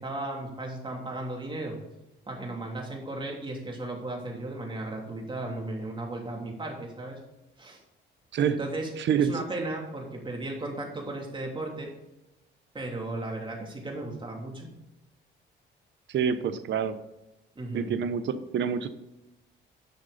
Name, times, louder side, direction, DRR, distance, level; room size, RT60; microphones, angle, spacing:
voice 1, 0.0-1.8 2.3-7.2 7.6-7.8 8.5-8.9 9.2-11.9 12.7-14.7 17.5-17.9, right 2 dB, 25° right, 0 dB, 3.1 m, -35 dB
voice 2, 9.0-9.3 16.1-17.0 17.7-18.9, right 7 dB, 65° right, 11 dB, 1.0 m, -27 dB
10.5 x 6.3 x 4.1 m, 0.97 s
cardioid pair, 90°, 20 cm